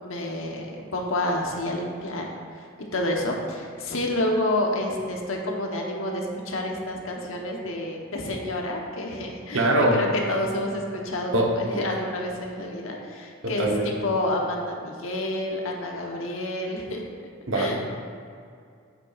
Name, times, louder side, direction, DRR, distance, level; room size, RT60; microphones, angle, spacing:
voice 1, 0.0-2.3 2.9-17.0 17.5-17.8, left 1 dB, 75° left, 0 dB, 1.1 m, -29 dB
voice 2, 9.5-10.0 11.3-11.8 13.4-13.9 17.5-17.8, right 1 dB, 65° right, -1 dB, 1.1 m, -23 dB
8.5 x 8.2 x 2.5 m, 2.3 s
head